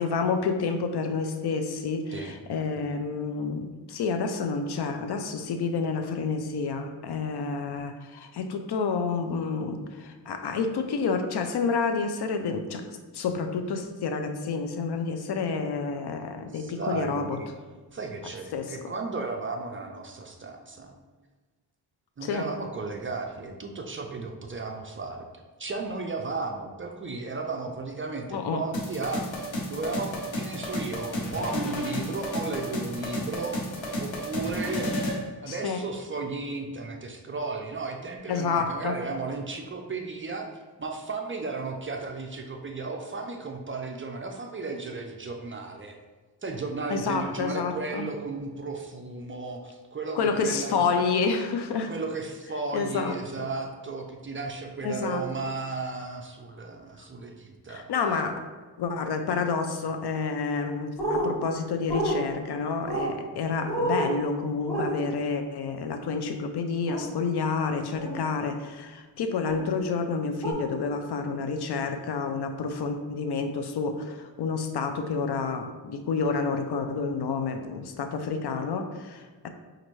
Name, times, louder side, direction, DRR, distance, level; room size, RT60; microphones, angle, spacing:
voice 1, 0.0-17.4 18.5-18.8 22.2-22.5 28.3-28.6 35.5-35.8 38.3-39.0 46.9-48.1 50.2-51.9 52.7-53.5 54.8-55.2 57.7-58.5 58.8-79.5, left 4 dB, 60° left, 7 dB, 0.5 m, -29 dB
voice 2, 16.5-17.5 17.9-20.9 22.2-25.3 25.6-29.3 29.7-33.6 34.0-34.9 35.4-40.5 40.8-46.0 46.4-50.8 51.9-57.9, right 3 dB, 30° right, 2 dB, 0.4 m, -34 dB
sound 1, 28.7-35.2, equal, 90° left, 1.0 m, -32 dB
sound 2, 61.0-61.2 61.9-62.1 62.9-63.1 63.6-64.1 64.7-64.9 66.9-67.0 67.9-68.2 69.5-69.6 70.4-70.5, right 1 dB, 5° left, 1.2 m, -28 dB
5.4 x 2.5 x 3.0 m, 1.3 s
wide cardioid pair, 100°, 44 cm